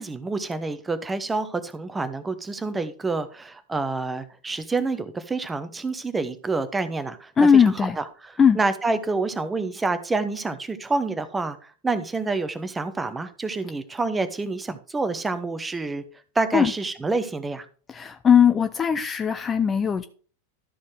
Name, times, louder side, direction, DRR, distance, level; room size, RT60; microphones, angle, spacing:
voice 1, 0.0-8.0 8.5-11.6 11.8-16.0 16.3-17.7, right 3 dB, 10° right, 0.8 m, -28 dB
voice 2, 7.4-8.0 8.4-8.6 16.5-16.7 17.9-20.1, left 7 dB, 20° left, 0.5 m, -19 dB
12.5 x 4.3 x 4.7 m
figure-of-eight pair, 90°, 0 cm